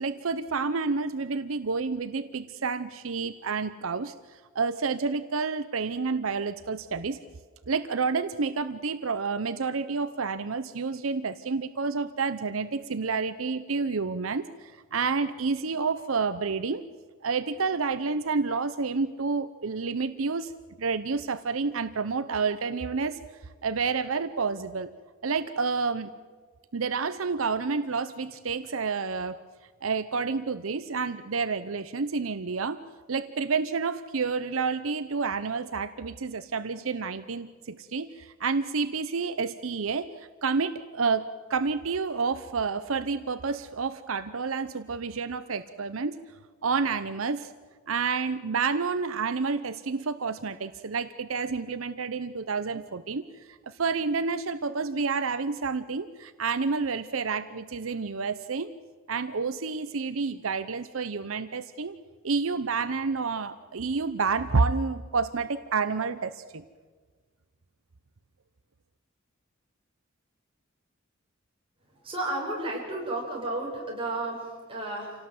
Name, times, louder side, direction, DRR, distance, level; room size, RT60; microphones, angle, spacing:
voice 1, 0.0-7.2 7.7-16.8 17.2-20.5 20.8-23.2 23.6-24.9 25.2-26.1 26.7-29.4 29.8-32.8 33.1-46.2 46.6-47.5 47.9-58.7 59.1-61.9 62.2-66.6, right 4 dB, 75° right, 12 dB, 0.8 m, -29 dB
voice 2, 72.0-75.1, right 2 dB, 25° right, -2 dB, 6.2 m, -32 dB
27.5 x 18.0 x 7.8 m, 1.5 s
head